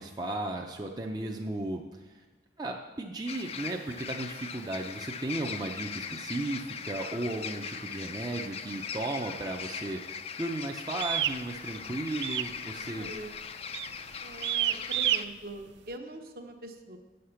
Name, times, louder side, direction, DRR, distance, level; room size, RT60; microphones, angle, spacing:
voice 1, 0.0-2.2 2.6-13.1, right 2 dB, 25° right, 1 dB, 0.5 m, -35 dB
voice 2, 0.9-1.5 12.9-13.3 14.2-17.0, right 2 dB, 55° right, 4 dB, 0.9 m, -44 dB
sound 1, 3.3-15.2, left 6 dB, 35° left, 0.4 m, -40 dB
sound 2, 11.0-11.4 12.2-12.6 12.8-13.2 13.7-14.0 14.4-15.2, right 12 dB, 80° right, 0.3 m, -28 dB
8.7 x 6.5 x 5.7 m, 1.2 s
head